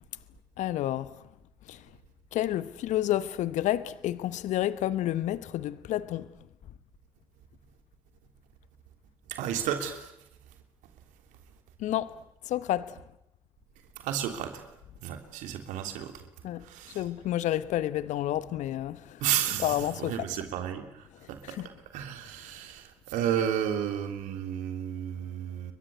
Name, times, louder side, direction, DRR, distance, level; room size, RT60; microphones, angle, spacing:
voice 1, 0.6-1.2 1.7-1.8 2.3-6.3 11.8-12.2 12.5-13.0 16.4-16.6 16.9-19.2 19.6-20.3 21.4-21.7, left 13 dB, 65° left, 1.0 m, -30 dB
voice 2, 9.3-10.1 14.0-14.6 15.0-16.1 16.7-17.0 19.2-20.8 21.3-21.6 21.9-25.7, right 10 dB, 70° right, 3.2 m, -32 dB
30.0 x 23.0 x 8.1 m
hypercardioid pair, 45°, 13 cm